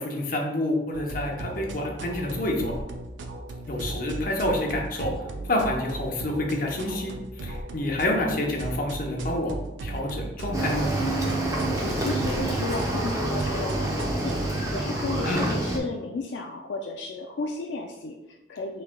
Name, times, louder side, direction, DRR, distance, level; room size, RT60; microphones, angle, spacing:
voice 1, 0.0-2.7 3.7-5.1 5.4-9.5 9.8-10.9 15.2-15.4, left 1 dB, 50° left, 0 dB, 0.8 m, -28 dB
sound 1, 0.9-14.6, right 2 dB, 85° right, 0.5 m, -36 dB
Cricket / Waves surf, 10.5-15.8, right 1 dB, 20° right, 0.6 m, -27 dB
voice 2, 11.9-14.4 14.7-18.8, left 3 dB, 80° left, 2 dB, 0.4 m, -33 dB
5.9 x 3.2 x 2.2 m, 0.97 s
head